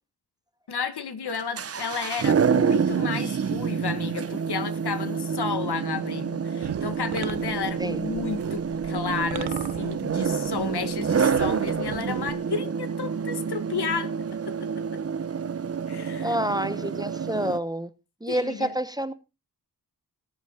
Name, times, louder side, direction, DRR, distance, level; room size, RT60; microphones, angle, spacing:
voice 1, 0.7-14.1 14.4-14.7 15.9-16.4 18.3-18.7, left 6 dB, 80° left, 1.6 m, -32 dB
sound 1, 1.3-17.6, right 6 dB, 40° right, 0.6 m, -28 dB
sound 2, 6.6-12.3, right 11 dB, 85° right, 0.6 m, -38 dB
voice 2, 16.2-17.9 18.2-19.1, equal, 10° right, 0.8 m, -28 dB
18.5 x 8.1 x 3.6 m
wide cardioid pair, 100°, 39 cm